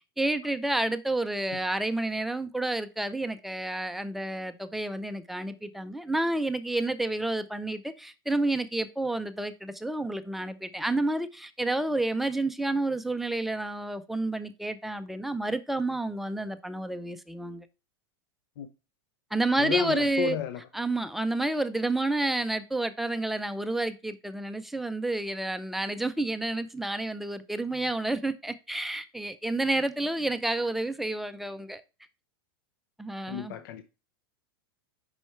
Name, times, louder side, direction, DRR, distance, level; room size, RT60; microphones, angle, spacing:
voice 1, 0.2-17.6 19.3-20.4 20.7-31.8 33.0-33.5, right 2 dB, ahead, 0.4 m, -30 dB
voice 2, 19.6-20.6 33.3-33.8, left 9 dB, 60° left, 0.7 m, -32 dB
6.2 x 5.5 x 3.2 m
supercardioid pair, 150°, 13 cm